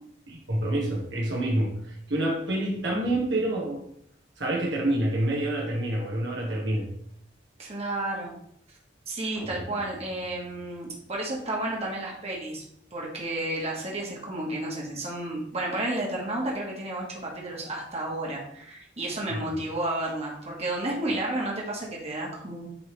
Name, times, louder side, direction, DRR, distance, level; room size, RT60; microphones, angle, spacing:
voice 1, 0.3-3.8 4.4-6.9 19.3-19.5, right 1 dB, 80° right, -2 dB, 1.7 m, -27 dB
voice 2, 7.6-8.3 9.1-12.6 12.9-22.7, right 1 dB, 35° right, -3 dB, 1.5 m, -32 dB
sound 1, 9.3-11.5, equal, 5° left, 0.9 m, -45 dB
9.6 x 3.6 x 3.3 m, 0.70 s
head